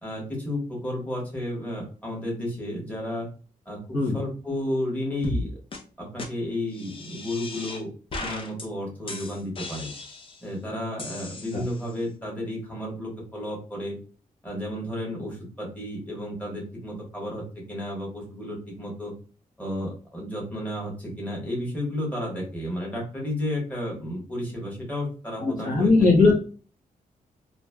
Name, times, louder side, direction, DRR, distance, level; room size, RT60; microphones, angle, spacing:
voice 1, 0.0-3.3 3.6-3.8 4.1-5.6 6.0-7.9 8.2-9.9 10.4-13.9 14.4-19.1 19.6-25.9, left 1 dB, 10° left, -3 dB, 1.3 m, -32 dB
sound 1, 5.2-5.4 5.7-5.8 6.2-6.3 6.7-7.8 8.1-8.7 9.1-10.5 11.0-11.9, left 2 dB, 40° left, 0.5 m, -36 dB
voice 2, 25.4-26.4, left 3 dB, 65° left, -4 dB, 1.1 m, -19 dB
3.0 x 2.6 x 2.2 m, 0.39 s
wide cardioid pair, 120°, 14 cm